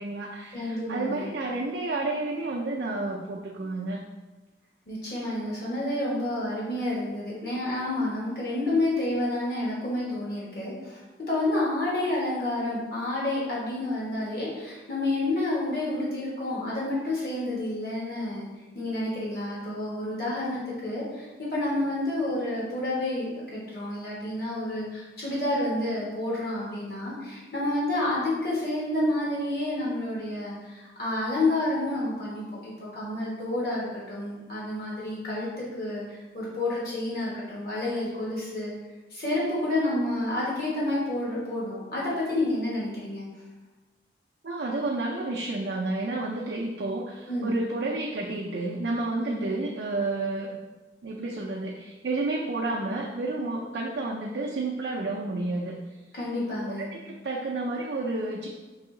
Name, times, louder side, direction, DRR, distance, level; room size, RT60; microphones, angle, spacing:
voice 1, 0.0-4.0 44.4-50.5 51.0-56.0 56.8-58.5, right 2 dB, 70° right, -2 dB, 0.5 m, -31 dB
voice 2, 0.5-1.3 4.9-18.5 18.7-38.7 39.1-43.3 47.3-47.6 49.2-49.5 56.1-56.9, left 1 dB, 55° left, -6 dB, 1.2 m, -29 dB
4.8 x 2.9 x 3.7 m, 1.2 s
head